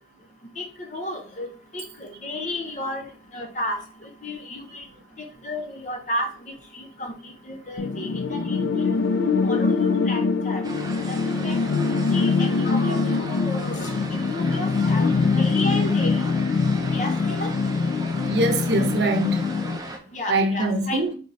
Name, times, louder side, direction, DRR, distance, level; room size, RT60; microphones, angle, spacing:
voice 1, 0.6-3.0 3.3-3.8 4.2-4.8 5.4-6.3 6.7-8.9 9.4-10.6 11.1-15.1 15.4-16.2 16.9-17.5 20.1-21.0, left 1 dB, 45° left, 0.7 m, -33 dB
sound 1, 7.8-19.8, left 4 dB, 75° left, 0.4 m, -23 dB
sound 2, 10.6-20.0, right 2 dB, 20° right, 0.4 m, -37 dB
voice 2, 18.3-19.4 20.3-21.1, right 1 dB, 70° right, 0.7 m, -23 dB
3.4 x 3.1 x 4.1 m
head